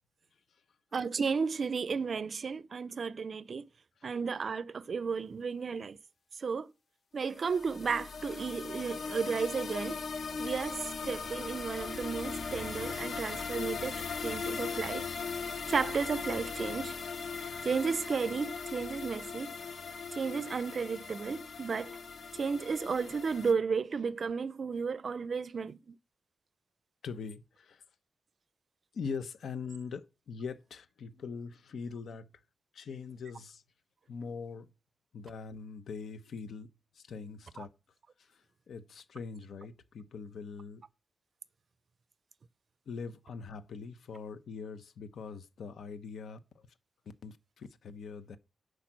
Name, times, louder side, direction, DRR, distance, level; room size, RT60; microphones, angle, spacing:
voice 1, 0.9-3.7 4.0-6.0 6.4-6.7 7.1-10.0 10.4-15.1 15.7-17.0 17.4-19.5 20.1-22.0 22.3-25.9 37.6-37.7, right 5 dB, 45° right, 0.4 m, -33 dB
sound 1, 7.3-23.5, left 5 dB, 55° left, 1.0 m, -39 dB
voice 2, 27.0-27.8 28.9-32.3 32.7-33.6 34.1-34.7 35.1-36.7 36.9-37.7 38.3-38.4 38.7-40.8 42.9-46.6 47.2-48.4, left 5 dB, 80° left, 0.8 m, -42 dB
10.5 x 4.9 x 7.4 m
wide cardioid pair, 170°, 0 cm